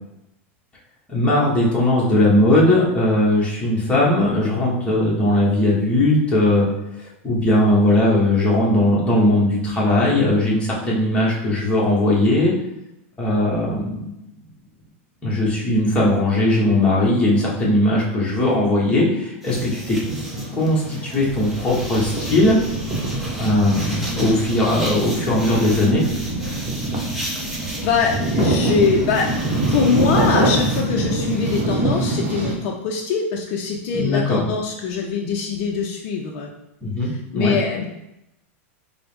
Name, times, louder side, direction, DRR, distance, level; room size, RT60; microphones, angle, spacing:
voice 1, 1.1-6.7 7.0-12.5 13.2-14.1 15.2-20.0 20.5-22.6 23.4-26.0 33.9-34.4 36.8-37.5, left 1 dB, 15° left, -5 dB, 1.0 m, -19 dB
sound 1, 19.4-31.6, equal, ahead, 0.7 m, -35 dB
sound 2, 19.5-32.5, right 1 dB, 25° right, 1.0 m, -25 dB
sound 3, 21.2-30.2, right 5 dB, 45° right, 0.6 m, -36 dB
voice 2, 27.8-36.5 37.0-37.9, left 6 dB, 50° left, 0 dB, 0.4 m, -23 dB
4.4 x 2.1 x 3.3 m, 0.88 s
supercardioid pair, 135°, 7 cm